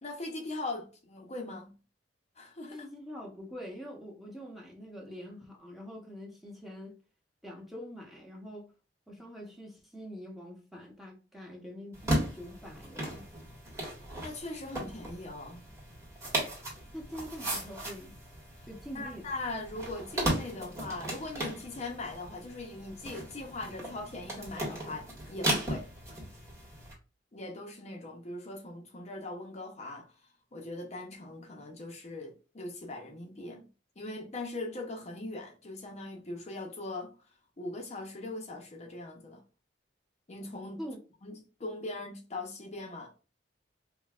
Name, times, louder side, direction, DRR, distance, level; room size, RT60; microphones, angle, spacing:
voice 1, 0.0-1.7 2.4-2.9 14.2-15.7 18.9-25.9 27.3-30.1 30.5-33.7 34.0-37.1 37.6-39.4 40.3-40.8 41.2-43.1, left 2 dB, 40° left, 0.7 m, -40 dB
voice 2, 2.7-7.0 7.4-8.7 9.1-13.3 16.9-18.1 18.7-19.3 40.8-41.0, equal, ahead, 0.8 m, -44 dB
sound 1, 11.9-26.9, right 1 dB, 15° right, 1.5 m, -36 dB
5.2 x 2.2 x 2.3 m
head